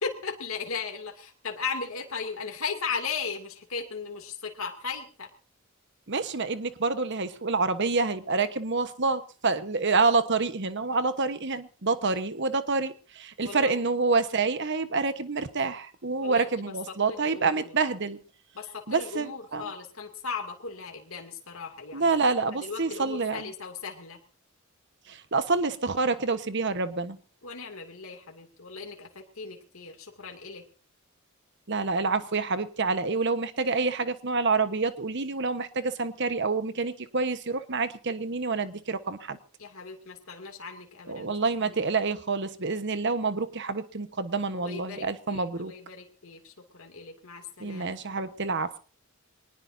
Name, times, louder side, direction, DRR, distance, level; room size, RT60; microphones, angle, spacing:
voice 1, 0.0-5.3 13.4-13.7 16.2-16.7 17.1-17.8 18.5-22.2 22.5-24.2 27.4-30.6 39.6-42.0 44.5-48.0, left 5 dB, 80° left, 2.6 m, -37 dB
voice 2, 6.1-18.2 18.9-19.7 21.9-23.5 25.1-27.2 31.7-39.4 41.1-45.7 47.6-48.8, right 4 dB, 55° right, 1.2 m, -27 dB
23.0 x 19.5 x 2.7 m
head